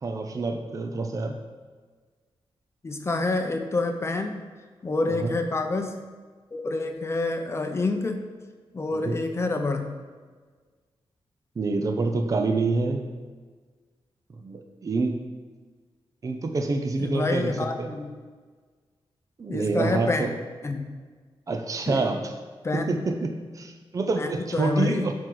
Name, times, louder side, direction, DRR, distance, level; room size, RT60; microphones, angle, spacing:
voice 1, 0.0-1.4 5.1-5.4 8.9-9.2 11.6-13.1 14.4-15.2 16.2-17.5 17.8-17.9 19.4-20.3 21.5-22.3 22.7-25.1, right 3 dB, 35° right, 5 dB, 0.6 m, -27 dB
voice 2, 2.8-4.4 4.8-6.1 6.5-8.2 8.7-10.0 17.0-18.1 19.5-20.3 20.6-20.9 21.9-22.1 22.6-23.0 24.2-25.1, left 3 dB, 30° left, 5 dB, 0.7 m, -27 dB
12.0 x 4.8 x 3.9 m, 1.5 s
wide cardioid pair, 140°, 10 cm